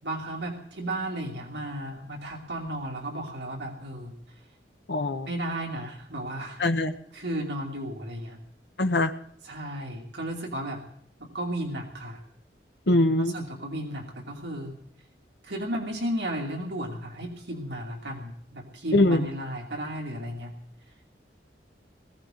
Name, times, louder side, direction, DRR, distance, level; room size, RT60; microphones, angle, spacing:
voice 1, 0.0-4.1 5.3-6.6 7.1-8.4 9.4-10.8 11.3-12.2 13.2-14.7 15.4-20.5, right 1 dB, 80° right, 0 dB, 2.8 m, -34 dB
voice 2, 4.9-5.3 6.6-7.0 8.8-9.1 12.9-13.3 18.9-19.2, left 2 dB, 80° left, 9 dB, 1.1 m, -22 dB
20.5 x 15.0 x 3.9 m, 0.66 s
head